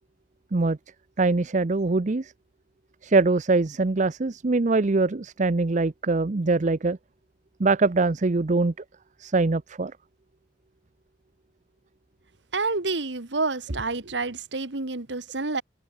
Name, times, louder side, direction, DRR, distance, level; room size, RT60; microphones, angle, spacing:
voice 1, 1.2-2.3 3.0-7.0 7.6-8.7 9.2-9.9, right 3 dB, 45° right, 0.6 m, -23 dB
voice 2, 12.5-15.6, right 3 dB, 85° right, 1.8 m, -28 dB
head